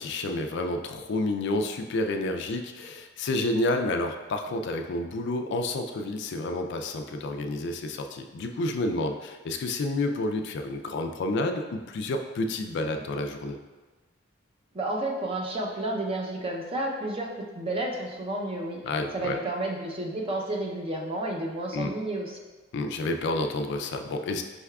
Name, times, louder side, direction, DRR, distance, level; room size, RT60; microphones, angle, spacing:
voice 1, 0.0-13.6 18.8-19.4 21.7-21.9 22.7-24.4, left 2 dB, 60° left, 5 dB, 0.4 m, -30 dB
voice 2, 14.7-18.8 19.1-22.4, right 1 dB, 30° right, -1 dB, 0.5 m, -31 dB
5.4 x 3.4 x 2.3 m, 1.3 s
head